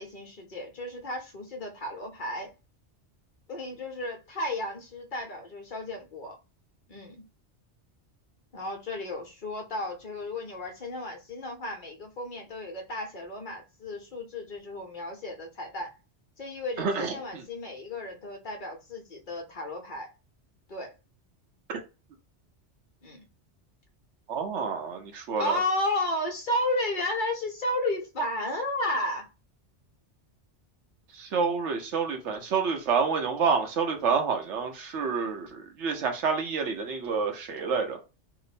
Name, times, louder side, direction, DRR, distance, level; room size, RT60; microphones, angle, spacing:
voice 1, 0.0-2.5 3.5-6.3 6.9-7.2 8.5-15.9 16.4-20.1 20.7-20.9 23.0-23.3 25.4-29.3, left 1 dB, 50° left, 0.9 m, -33 dB
voice 2, 16.8-17.4 21.7-21.8 24.3-25.6 31.1-38.0, right 5 dB, 85° right, 1.1 m, -28 dB
3.0 x 2.1 x 4.0 m
omnidirectional pair, 1.2 m